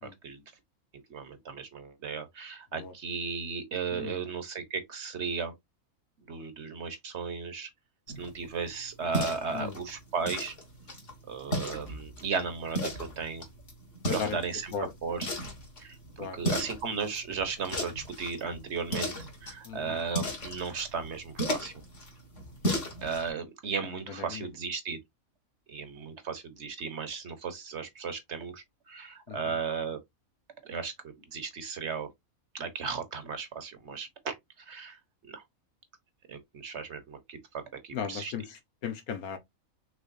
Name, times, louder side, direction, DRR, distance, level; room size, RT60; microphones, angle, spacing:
voice 1, 1.1-5.5 6.3-7.7 8.2-10.5 11.3-13.4 14.1-15.3 15.8-21.7 23.0-25.0 25.7-30.0 30.6-32.1 32.5-34.3 34.7-35.0 35.3-35.4 36.3-38.3, right 5 dB, 55° right, 1.2 m, -35 dB
voice 2, 3.9-4.2 9.5-9.8 14.1-14.4 14.7-14.9 16.2-16.4 19.6-20.0 24.1-24.5 29.3-29.6 37.9-39.4, left 7 dB, 85° left, 1.5 m, -37 dB
sound 1, 8.1-23.3, equal, 55° left, 2.3 m, -36 dB
6.0 x 3.4 x 2.5 m
omnidirectional pair, 1.5 m